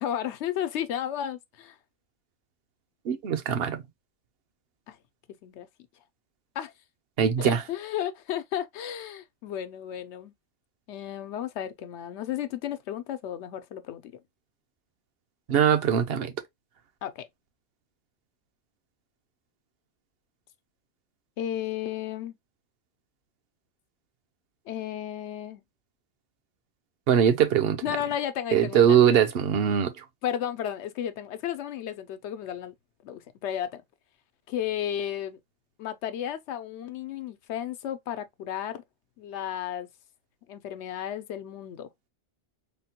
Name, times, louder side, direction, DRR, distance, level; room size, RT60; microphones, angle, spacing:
voice 1, 0.0-1.8 4.9-5.0 5.4-5.7 6.6-6.7 7.4-10.3 10.9-14.1 17.0-17.3 21.4-22.3 24.7-25.6 27.8-29.2 30.2-32.7 33.0-33.8 34.5-35.4 35.8-38.8 39.2-39.9 40.5-41.9, left 10 dB, 85° left, 0.9 m, -33 dB
voice 2, 3.0-3.8 7.2-7.6 15.5-16.3 27.1-27.8 28.5-30.0, right 8 dB, 65° right, 0.8 m, -22 dB
3.6 x 2.2 x 2.8 m
omnidirectional pair, 1.1 m